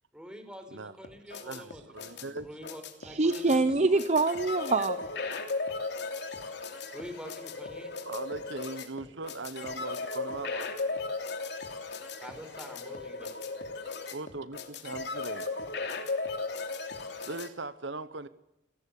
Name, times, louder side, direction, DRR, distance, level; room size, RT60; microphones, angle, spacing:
voice 1, 0.1-1.8 2.1-4.0 6.9-7.9 12.2-13.3, equal, 5° right, 7 dB, 4.6 m, -46 dB
sound 1, 1.0-17.5, left 3 dB, 65° left, 3.1 m, -36 dB
voice 2, 1.3-2.5 8.0-11.1 14.1-15.5 17.2-18.3, right 3 dB, 70° right, 14 dB, 1.1 m, -40 dB
voice 3, 3.0-5.0, right 3 dB, 40° right, 12 dB, 0.8 m, -25 dB
28.5 x 18.0 x 8.4 m, 0.91 s
head